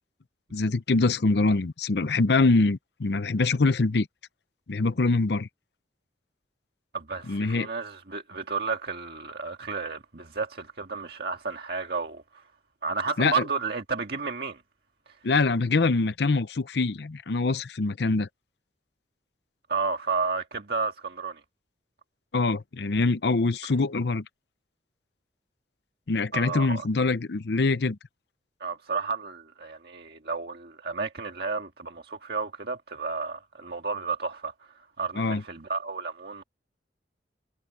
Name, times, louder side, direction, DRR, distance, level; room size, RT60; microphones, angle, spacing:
voice 1, 0.5-4.1 4.7-5.5 7.3-7.7 13.2-13.4 15.2-18.3 22.3-24.2 26.1-28.0 35.2-35.4, left 3 dB, 65° left, 0.6 m, -24 dB
voice 2, 6.9-12.4 12.8-14.6 19.7-21.4 26.3-26.8 28.6-36.4, right 4 dB, 60° right, 1.8 m, -32 dB
head